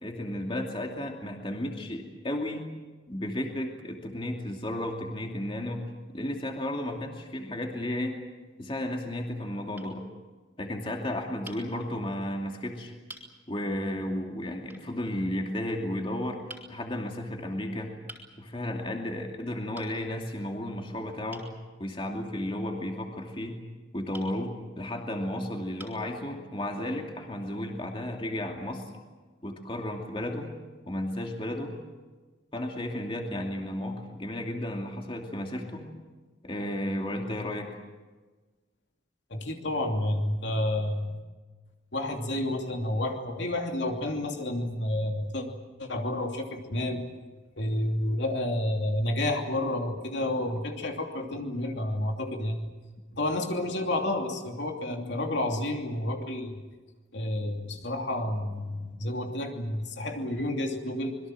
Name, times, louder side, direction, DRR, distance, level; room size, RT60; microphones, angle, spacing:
voice 1, 0.0-2.7 3.1-5.8 6.1-8.1 8.6-10.0 10.6-12.9 13.5-16.4 16.7-17.9 18.4-21.5 21.8-23.6 23.9-28.9 29.4-30.5 30.9-31.8 32.5-35.9 36.4-37.7, left 1 dB, 25° left, 2 dB, 2.6 m, -33 dB
sound 1, 8.3-8.6 9.3-9.5 9.8-9.9 11.4-11.7 12.5-12.6 13.1-13.3 14.7-14.9 16.5-16.7 18.1-18.3 19.7-20.0 21.3-21.5 24.1-24.3 25.2-25.3 25.8-26.1, right 1 dB, 10° right, 4.0 m, -46 dB
voice 2, 39.3-41.2 41.9-45.5 45.8-47.0 47.6-52.7 53.1-56.6 57.1-61.2, left 1 dB, 65° left, 3 dB, 2.9 m, -30 dB
26.0 x 22.0 x 7.7 m, 1.3 s
head